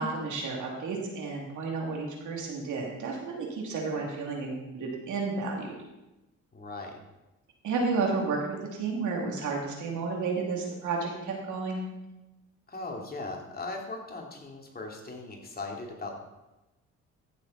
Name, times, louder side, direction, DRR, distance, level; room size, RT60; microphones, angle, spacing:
voice 1, 0.0-5.7 7.6-11.8, right 4 dB, 75° right, 0 dB, 2.9 m, -32 dB
voice 2, 6.5-7.0 12.7-16.2, left 3 dB, 30° left, 0 dB, 2.5 m, -38 dB
14.5 x 7.2 x 4.3 m, 1.0 s
cardioid pair, 90°, 30 cm